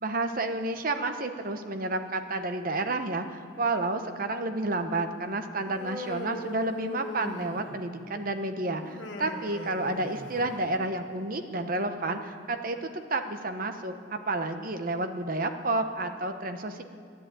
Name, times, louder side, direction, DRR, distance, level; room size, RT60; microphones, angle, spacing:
voice 1, 0.0-16.8, right 2 dB, 50° right, 7 dB, 1.0 m, -30 dB
Human voice, 5.7-7.9 8.8-10.7, left 1 dB, 90° left, 1.5 m, -40 dB
13.0 x 10.5 x 9.0 m, 2.4 s
head